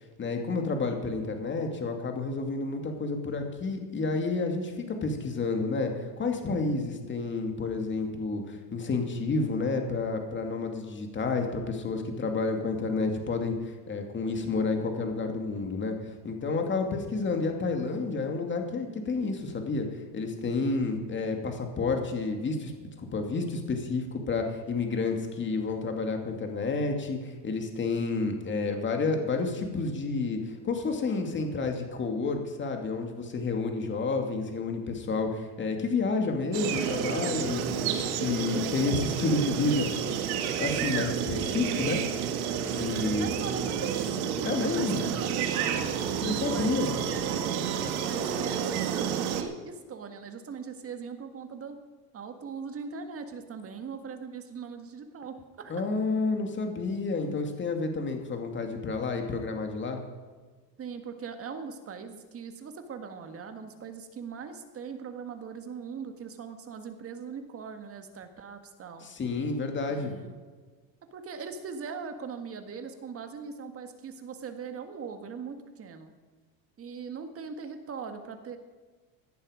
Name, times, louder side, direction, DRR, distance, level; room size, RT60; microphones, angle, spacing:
voice 1, 0.2-19.9 20.1-39.9 40.6-42.0 42.8-43.3 44.4-45.1 46.2-46.9 55.7-60.0 69.0-70.1, left 3 dB, 25° left, 4 dB, 2.4 m, -30 dB
sound 1, 36.5-49.4, right 8 dB, 75° right, 1.8 m, -30 dB
voice 2, 42.4-44.1 44.6-45.9 46.2-47.4 47.9-51.8 52.1-55.7 60.8-69.1 69.9-70.4 71.1-76.1 76.8-78.6, right 6 dB, 30° right, 7 dB, 1.7 m, -40 dB
17.0 x 11.0 x 5.0 m, 1.4 s
cardioid pair, 130°, 43 cm